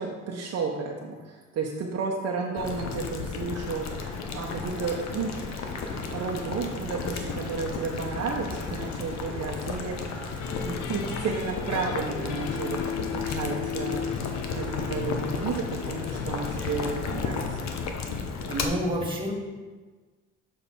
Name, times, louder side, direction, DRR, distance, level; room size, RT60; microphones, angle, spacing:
voice 1, 0.0-3.9 4.3-5.3 5.8-10.0 10.6-14.0 14.6-17.6, right 4 dB, 55° right, 0 dB, 0.9 m, -32 dB
Boiling, 2.6-18.7, left 5 dB, 60° left, 0.9 m, -34 dB
sound 1, 3.6-16.8, equal, 5° left, 2.1 m, -43 dB
sound 2, 10.4-18.0, left 8 dB, 80° left, 0.6 m, -36 dB
voice 2, 18.5-19.3, equal, 15° right, -1 dB, 1.8 m, -28 dB
7.1 x 5.7 x 4.2 m, 1.4 s
cardioid pair, 100°, 31 cm